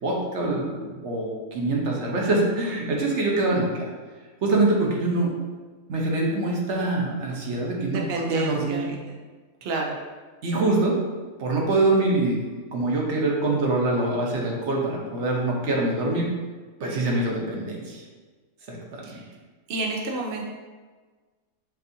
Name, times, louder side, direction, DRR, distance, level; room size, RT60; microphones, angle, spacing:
voice 1, 0.0-3.9 4.4-5.3 5.9-8.8 10.4-11.0 11.4-12.4 12.7-16.3 16.8-18.0 18.7-19.2, right 2 dB, 50° right, -2 dB, 1.0 m, -24 dB
voice 2, 7.9-9.0 9.6-9.9 19.0-19.3 19.7-20.4, right 3 dB, 75° right, -1 dB, 0.5 m, -30 dB
6.9 x 2.6 x 2.6 m, 1.4 s
omnidirectional pair, 1.7 m